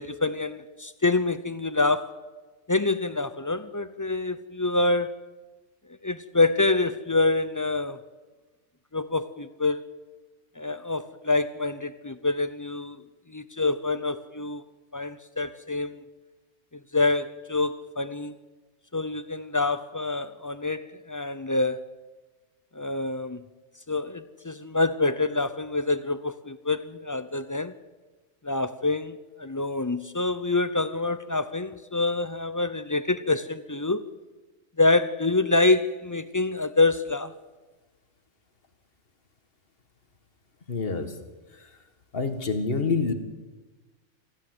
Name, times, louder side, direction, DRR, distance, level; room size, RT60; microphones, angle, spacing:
voice 1, 0.0-2.1 2.7-5.2 6.0-8.0 8.9-9.8 10.6-13.0 13.3-14.6 14.9-16.0 16.9-18.4 18.9-21.8 22.7-23.4 23.9-27.8 28.4-34.1 34.8-37.3, left 3 dB, 30° left, 0.3 m, -26 dB
voice 2, 40.7-41.2 41.5-41.7 42.1-43.1, left 4 dB, 45° left, 1.9 m, -27 dB
24.5 x 15.5 x 7.9 m
omnidirectional pair, 1.3 m